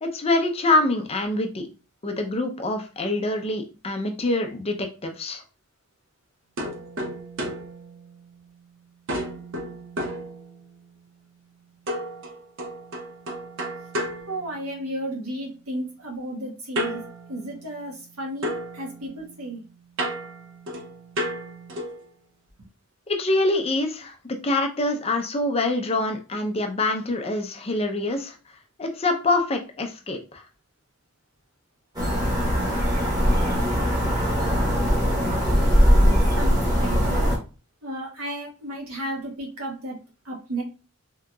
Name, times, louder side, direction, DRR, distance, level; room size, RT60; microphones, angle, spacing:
voice 1, 0.0-1.7 2.0-5.4 23.1-24.2 24.4-28.4 28.8-30.4, left 2 dB, 25° left, 4 dB, 0.5 m, -25 dB
sound 1, 6.6-8.7 9.1-10.9 11.9-15.1 16.8-18.1 18.4-22.1, equal, 60° right, 0.7 m, -33 dB
voice 2, 14.3-17.0 17.3-19.6 36.0-37.3 37.8-40.0 40.2-40.6, right 1 dB, 80° right, -1 dB, 1.3 m, -33 dB
sound 2, 31.9-37.4, equal, 20° right, 1.0 m, -20 dB
3.7 x 2.8 x 2.2 m, 0.34 s
head